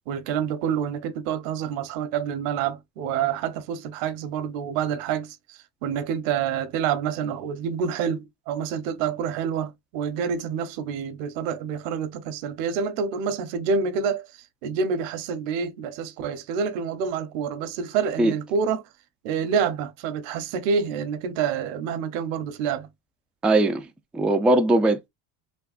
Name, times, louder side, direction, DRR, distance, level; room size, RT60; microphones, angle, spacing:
voice 1, 0.1-14.3 14.6-18.8 19.2-22.9, right 6 dB, 80° right, 0.9 m, -27 dB
voice 2, 23.4-23.9 24.1-25.1, right 2 dB, 5° right, 0.3 m, -20 dB
3.5 x 2.3 x 2.3 m
supercardioid pair, 115°, 39 cm